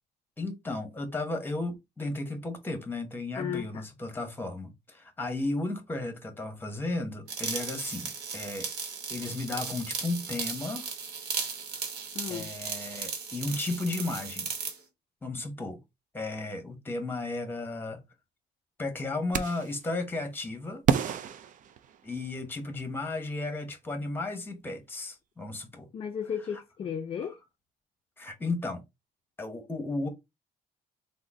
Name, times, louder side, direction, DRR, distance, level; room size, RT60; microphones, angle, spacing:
voice 1, 0.4-8.7 9.1-10.9 12.3-14.5 15.2-15.8 16.1-18.0 18.8-20.8 22.0-25.9 28.2-28.8 29.4-30.1, left 2 dB, 10° left, 1.0 m, -34 dB
voice 2, 3.3-3.8 12.1-12.5 25.9-27.4, left 8 dB, 35° left, 0.4 m, -34 dB
sound 1, 7.3-14.8, right 6 dB, 80° right, 1.0 m, -36 dB
sound 2, 19.3-19.8 20.9-22.4, right 8 dB, 50° right, 0.4 m, -29 dB
3.7 x 2.1 x 3.5 m
cardioid pair, 110°, 17 cm